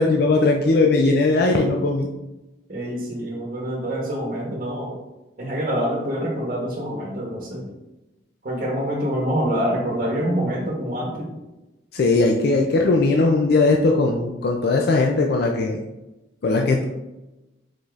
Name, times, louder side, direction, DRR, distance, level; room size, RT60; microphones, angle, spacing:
voice 1, 0.0-2.1 11.9-15.8 16.4-16.9, left 3 dB, 60° left, 1 dB, 0.4 m, -19 dB
voice 2, 2.7-5.0 5.4-7.7 8.4-11.3, equal, 50° right, -3 dB, 1.0 m, -26 dB
4.9 x 4.0 x 2.4 m, 1.0 s
head